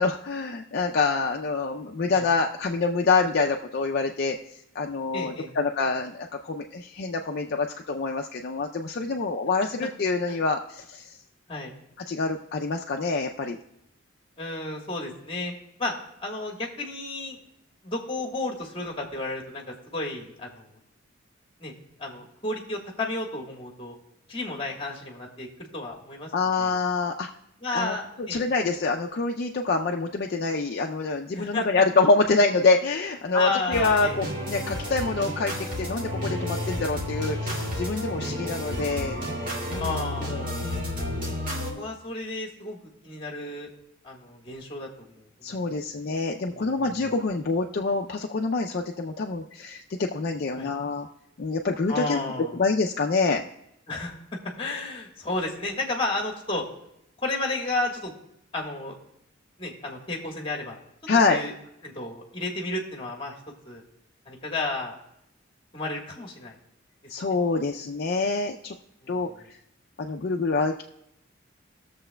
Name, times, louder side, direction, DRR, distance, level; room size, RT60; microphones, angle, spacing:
voice 1, 0.0-4.4 4.7-11.2 12.1-13.6 26.3-27.3 27.7-39.2 39.7-41.8 45.4-51.1 51.4-52.2 52.5-53.4 61.1-61.4 67.1-68.8 69.1-69.6 70.0-70.8, left 3 dB, 50° left, 2 dB, 0.4 m, -26 dB
voice 2, 5.1-5.5 10.3-10.4 11.5-11.7 14.4-15.5 15.8-15.9 16.2-17.4 17.8-20.7 21.6-21.7 22.0-24.0 24.3-26.8 27.6-28.4 31.3-31.8 33.3-34.2 34.8-35.0 38.2-39.0 39.8-40.3 41.7-43.7 44.0-45.7 46.5-47.1 50.5-50.7 51.9-52.6 53.9-54.2 54.6-56.7 57.2-58.1 58.5-59.0 59.6-60.8 61.3-61.5 61.8-63.3 63.6-63.8 64.2-64.9 65.7-66.6 69.0-69.5, left 2 dB, 25° left, 0 dB, 1.3 m, -32 dB
sound 1, 33.7-41.7, left 1 dB, 45° right, 1.9 m, -31 dB
19.5 x 6.8 x 2.2 m, 0.81 s
head